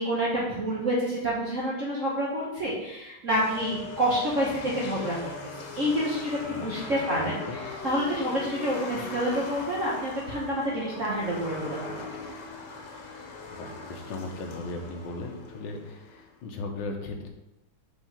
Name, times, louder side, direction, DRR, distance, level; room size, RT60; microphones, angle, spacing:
voice 1, 0.0-7.4 7.8-12.0, equal, 50° right, -6 dB, 1.1 m, -28 dB
sound 1, 3.3-16.3, left 3 dB, 85° left, 1.7 m, -40 dB
voice 2, 6.4-7.6 13.5-17.3, left 2 dB, 65° left, 2 dB, 1.4 m, -37 dB
4.9 x 3.6 x 5.6 m, 0.98 s
omnidirectional pair, 2.3 m